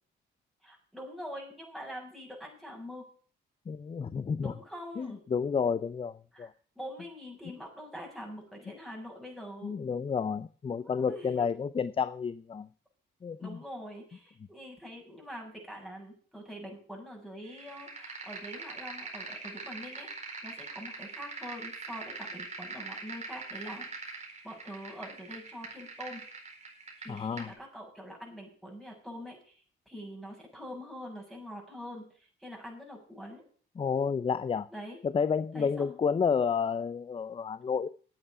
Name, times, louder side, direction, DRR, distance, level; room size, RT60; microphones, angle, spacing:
voice 1, 0.6-3.1 4.4-5.2 6.3-6.5 6.8-9.8 10.8-11.5 13.4-20.1 20.4-24.1 24.4-26.2 27.0-33.4 34.7-35.0 35.5-36.0, equal, ahead, 0 dB, 7.4 m, -44 dB
voice 2, 3.7-4.5 5.0-6.5 9.6-12.7 13.2-13.6 27.1-27.5 33.8-34.7 35.0-37.9, left 6 dB, 30° left, 15 dB, 0.6 m, -30 dB
sound 1, 17.5-27.5, right 3 dB, 35° right, 4.4 m, -43 dB
9.2 x 8.8 x 9.4 m, 0.43 s
cardioid pair, 90°, 20 cm